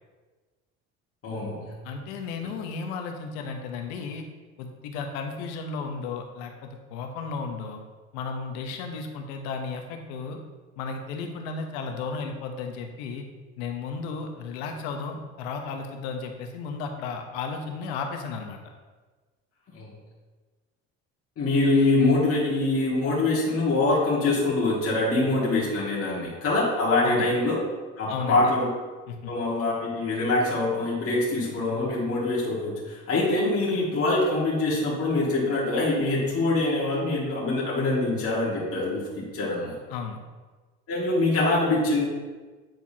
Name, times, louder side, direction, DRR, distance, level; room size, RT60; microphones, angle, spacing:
voice 1, 1.2-1.7 19.7-19.9 21.4-27.6 28.0-28.7 29.3-39.8 40.9-42.1, left 2 dB, 45° left, -6 dB, 2.0 m, -24 dB
voice 2, 1.8-4.3 4.6-7.8 8.1-10.4 10.8-13.3 13.6-18.6 27.0-27.3 28.1-28.5 29.1-29.3 39.9-40.2, left 5 dB, 85° left, 4 dB, 1.0 m, -34 dB
9.2 x 4.6 x 2.9 m, 1.3 s
supercardioid pair, 85°, 32 cm